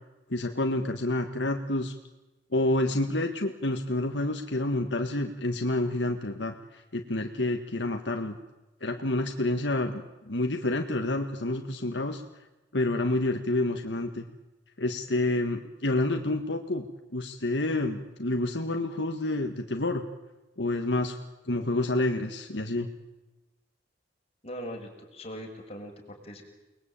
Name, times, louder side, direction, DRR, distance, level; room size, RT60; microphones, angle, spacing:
voice 1, 0.3-1.9 2.5-8.4 8.8-12.2 12.7-14.3 14.8-16.8 17.1-20.0 20.6-21.2 21.4-22.9, left 2 dB, 65° left, 5 dB, 1.8 m, -28 dB
voice 2, 24.4-26.4, equal, 35° left, 2 dB, 6.1 m, -40 dB
30.0 x 21.5 x 8.9 m, 1.1 s
head